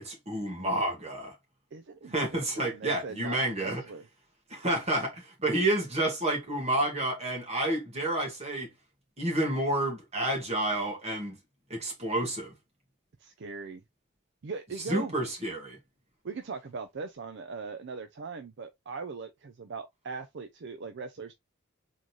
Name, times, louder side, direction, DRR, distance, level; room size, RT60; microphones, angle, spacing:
voice 1, 0.0-1.4 2.1-3.8 4.5-8.7 9.2-11.4 11.7-12.5 14.9-15.8, right 1 dB, 30° right, 1.9 m, -30 dB
voice 2, 1.7-2.5 2.7-4.1 13.2-13.8 14.4-15.2 16.2-21.3, right 4 dB, 55° right, 0.5 m, -40 dB
3.8 x 3.7 x 3.0 m
head